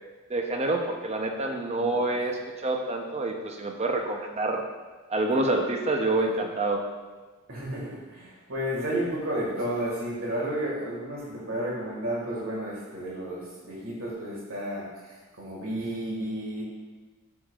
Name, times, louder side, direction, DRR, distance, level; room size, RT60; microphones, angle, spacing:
voice 1, 0.3-4.6 5.1-6.8, right 2 dB, 30° right, 2 dB, 0.7 m, -27 dB
voice 2, 1.8-2.1 6.1-6.3 7.5-14.9 15.4-16.6, right 1 dB, 75° right, -4 dB, 1.9 m, -32 dB
9.0 x 5.0 x 2.4 m, 1.3 s
head